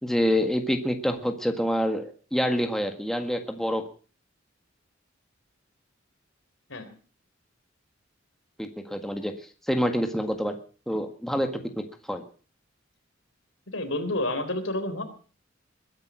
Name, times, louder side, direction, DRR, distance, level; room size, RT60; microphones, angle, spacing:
voice 1, 0.0-3.8 8.6-9.3 9.7-10.5 10.9-11.5 11.7-12.2, equal, ahead, 5 dB, 1.7 m, -27 dB
voice 2, 13.7-15.0, left 1 dB, 80° left, 8 dB, 3.8 m, -29 dB
21.5 x 10.5 x 6.2 m, 0.40 s
head